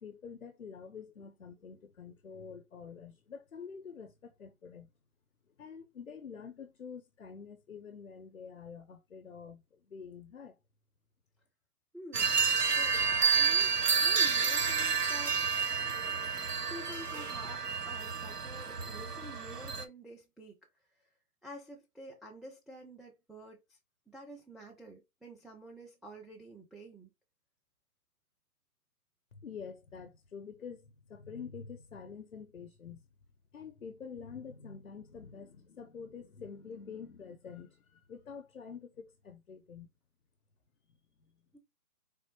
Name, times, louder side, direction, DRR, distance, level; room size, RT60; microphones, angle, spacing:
voice 1, 0.0-4.9 5.6-10.6 29.3-33.0 33.5-39.9 41.2-41.4, left 6 dB, 55° left, 0.7 m, -47 dB
voice 2, 11.9-12.4 12.7-13.7 14.0-15.4 16.7-20.6 21.4-23.6 24.1-27.1 41.5-41.6, right 1 dB, ahead, 0.4 m, -49 dB
sound 1, 12.1-19.8, right 6 dB, 90° right, 1.0 m, -30 dB
4.1 x 2.9 x 2.9 m
hypercardioid pair, 175°, 46 cm